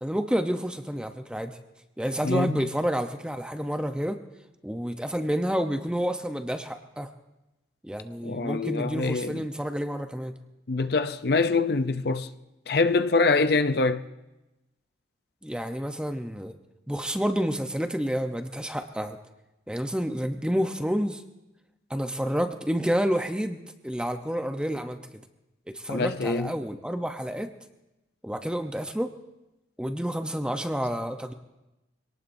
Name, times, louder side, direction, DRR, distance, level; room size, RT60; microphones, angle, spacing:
voice 1, 0.0-1.6 2.0-4.2 4.6-7.1 7.8-10.3 15.4-16.6 16.9-19.2 19.7-21.2 21.9-25.2 25.7-27.5 28.2-29.1 29.8-31.3, equal, 5° right, 0.7 m, -29 dB
voice 2, 2.2-2.6 8.2-9.4 10.7-12.3 12.7-14.0 25.9-26.5, left 3 dB, 55° left, 0.6 m, -24 dB
26.0 x 18.5 x 2.7 m
head